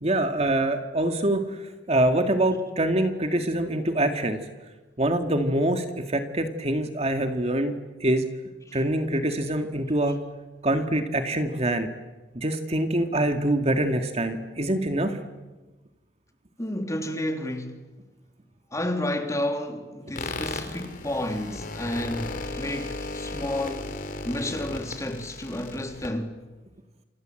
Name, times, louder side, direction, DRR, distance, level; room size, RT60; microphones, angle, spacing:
voice 1, 0.0-1.6 1.9-4.4 5.0-7.7 8.0-8.2 8.7-10.2 10.6-11.9 12.3-15.2 23.3-23.4, right 1 dB, 35° right, 2.1 m, -25 dB
voice 2, 16.6-17.9 18.7-26.4, left 1 dB, 20° left, 3.2 m, -31 dB
sound 1, 20.1-26.1, left 2 dB, 50° left, 3.5 m, -35 dB
28.5 x 26.5 x 7.8 m
head